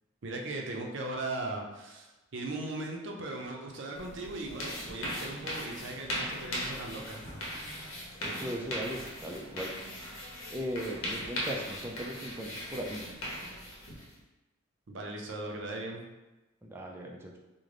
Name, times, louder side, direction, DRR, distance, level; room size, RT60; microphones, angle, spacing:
voice 1, 0.2-7.2 14.9-16.0, right 2 dB, 65° right, 1 dB, 0.5 m, -38 dB
sound 1, 3.9-14.2, equal, 85° left, 0.8 m, -39 dB
voice 2, 8.2-9.7 10.5-13.0 16.6-17.4, equal, 10° right, -1 dB, 0.3 m, -38 dB
3.2 x 2.1 x 3.7 m, 1.1 s
head